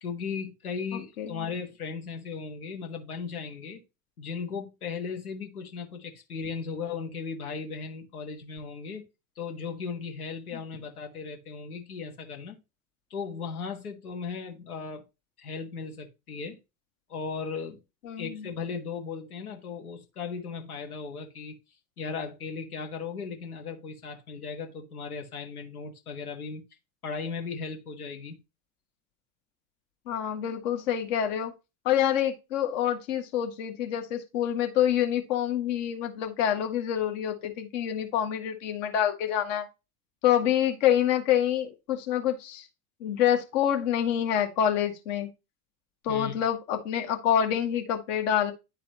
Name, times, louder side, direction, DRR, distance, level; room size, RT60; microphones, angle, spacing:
voice 1, 0.0-3.8 4.2-9.1 9.4-12.6 13.1-15.0 15.4-16.6 17.1-17.8 18.2-21.6 22.0-26.6 27.0-28.4 46.1-46.3, left 5 dB, 75° left, 1.5 m, -37 dB
voice 2, 18.0-18.5 30.1-31.5 31.8-39.7 40.2-42.6 43.0-45.3 46.0-48.5, left 10 dB, 55° left, 1.5 m, -27 dB
10.5 x 3.9 x 2.9 m
figure-of-eight pair, 75°, 44 cm